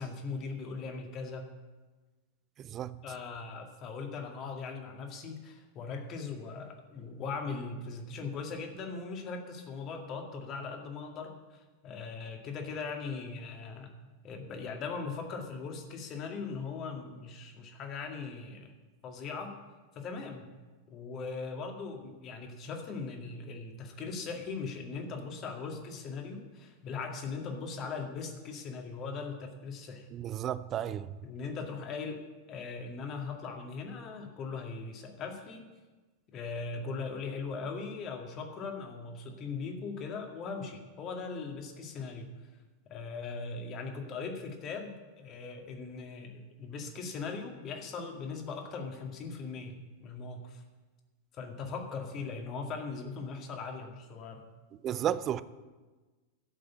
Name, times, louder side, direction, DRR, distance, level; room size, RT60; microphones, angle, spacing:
voice 1, 0.0-1.5 3.0-13.9 14.2-18.7 19.0-19.5 20.0-20.5 20.9-30.1 31.0-32.2 32.5-35.7 36.3-42.3 42.9-50.6 51.3-54.4, left 4 dB, 35° left, 3 dB, 2.1 m, -39 dB
voice 2, 2.6-3.0 30.1-31.1 54.8-55.4, right 10 dB, 30° right, 16 dB, 0.5 m, -32 dB
12.0 x 7.7 x 8.2 m, 1.3 s
figure-of-eight pair, 90°, 0 cm